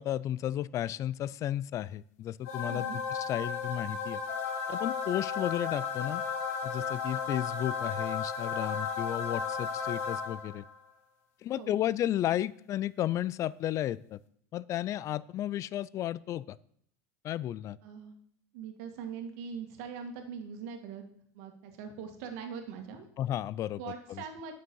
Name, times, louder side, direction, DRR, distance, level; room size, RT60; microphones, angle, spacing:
voice 1, 0.0-4.2 4.7-6.2 6.6-10.6 11.4-14.2 14.5-16.6 17.2-17.8 23.2-23.8 24.1-24.2, left 12 dB, 40° left, 21 dB, 0.4 m, -33 dB
sound 1, 2.5-10.7, left 6 dB, 75° left, 1.4 m, -34 dB
voice 2, 2.7-3.0 11.5-11.8 17.8-18.1 18.5-21.0 21.3-23.1 23.8-24.5, right 6 dB, 70° right, 5 dB, 1.9 m, -42 dB
9.6 x 6.5 x 5.4 m, 0.65 s
supercardioid pair, 115°, 8 cm